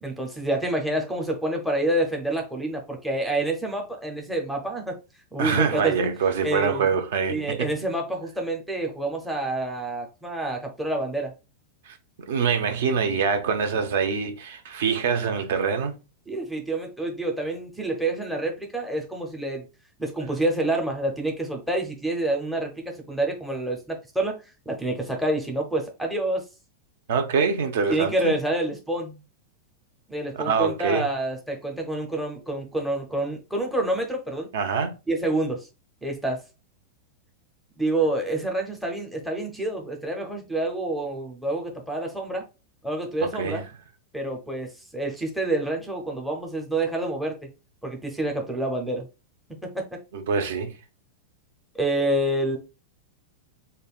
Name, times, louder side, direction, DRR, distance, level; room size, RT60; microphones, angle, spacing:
voice 1, 0.0-5.0 5.3-6.1 6.4-6.9 7.3-11.3 16.3-19.6 20.0-26.4 27.9-29.2 30.1-34.5 35.1-35.7 36.0-36.4 37.8-42.4 42.8-43.6 44.1-47.5 47.8-49.1 49.6-50.0 51.7-52.6, right 1 dB, ahead, 0.5 m, -28 dB
voice 2, 5.4-7.7 11.9-12.0 12.3-15.9 27.1-28.3 30.3-31.0 34.5-35.0 43.2-43.6 50.1-50.7, right 6 dB, 65° right, 0.7 m, -25 dB
5.2 x 2.2 x 2.3 m
supercardioid pair, 170°, 0 cm